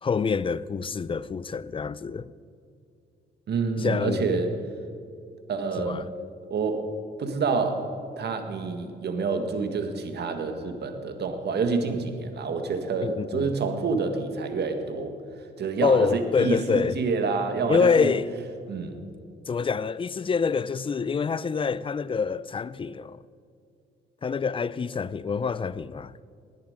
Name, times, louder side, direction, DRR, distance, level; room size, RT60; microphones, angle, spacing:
voice 1, 0.0-2.3 3.8-4.4 5.8-6.1 13.0-13.6 15.8-17.0 17.7-18.3 19.5-23.2 24.2-26.1, left 5 dB, 25° left, 0.4 m, -26 dB
voice 2, 3.5-4.5 5.5-6.0 6.5-6.9 7.2-7.9 8.2-15.1 15.6-18.1 18.7-19.0, right 4 dB, 55° right, 1.8 m, -28 dB
19.5 x 10.5 x 5.1 m
cardioid pair, 90°, 20 cm